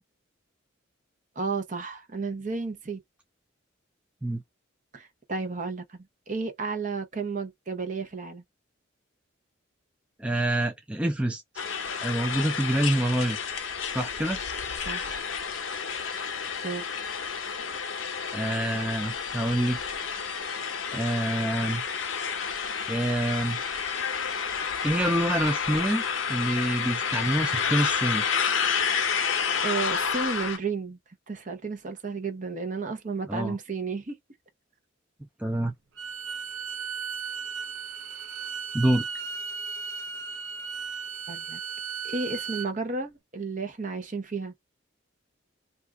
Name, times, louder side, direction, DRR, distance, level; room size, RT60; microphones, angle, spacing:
voice 1, 1.4-3.0 4.9-8.4 14.8-15.3 16.6-16.8 29.6-31.0 31.3-34.2 41.3-41.6 42.0-44.5, right 4 dB, 40° right, 0.8 m, -32 dB
voice 2, 10.2-11.4 12.0-13.4 13.9-14.4 18.3-19.8 20.9-21.8 22.9-23.6 24.8-26.0 26.3-28.3 33.3-33.6 35.4-35.7 38.7-39.0, right 1 dB, 5° right, 0.3 m, -26 dB
sound 1, 11.6-30.6, left 6 dB, 80° left, 0.6 m, -30 dB
Bowed string instrument, 36.0-42.7, right 5 dB, 75° right, 0.6 m, -35 dB
2.6 x 2.3 x 3.4 m
head